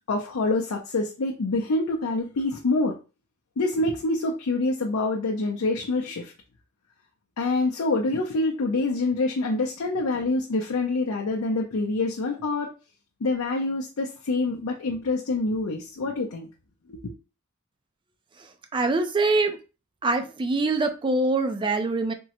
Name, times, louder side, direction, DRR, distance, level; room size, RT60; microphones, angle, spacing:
voice 1, 0.1-2.9 3.6-6.3 7.4-12.7 13.2-16.5 16.9-17.1, left 2 dB, 90° left, 0 dB, 0.5 m, -26 dB
voice 2, 18.7-19.6 20.0-22.1, right 3 dB, 25° right, 7 dB, 0.4 m, -24 dB
3.6 x 2.0 x 2.8 m, 0.32 s
head